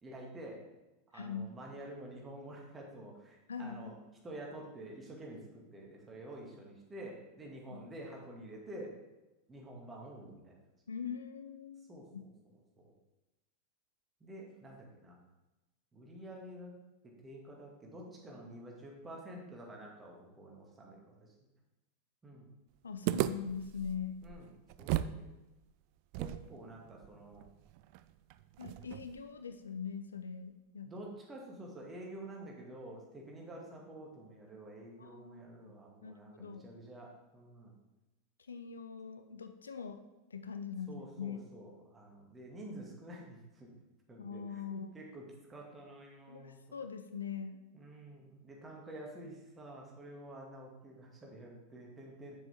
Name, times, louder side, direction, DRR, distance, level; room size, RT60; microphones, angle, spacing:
voice 1, 0.0-0.6 1.1-3.9 4.2-8.9 9.5-10.5 11.9-12.3 14.2-15.2 15.9-16.8 17.2-21.3 22.2-22.5 24.2-24.5 24.8-25.2 26.1-27.4 30.8-37.7 40.9-43.7 44.1-45.2 45.5-46.6 47.7-52.4, right 1 dB, 15° right, -1 dB, 2.0 m, -49 dB
voice 2, 1.1-1.5 3.5-3.9 7.7-7.8 10.9-12.3 22.8-24.2 28.6-30.9 35.0-35.7 36.0-36.7 38.4-40.0 40.3-41.5 44.2-44.9 46.3-47.6, left 6 dB, 70° left, 9 dB, 0.5 m, -42 dB
sound 1, 23.1-25.2 25.5-25.6 26.1-29.3, right 14 dB, 45° right, 0.3 m, -37 dB
8.1 x 7.0 x 3.5 m, 1.0 s
figure-of-eight pair, 90°, 0 cm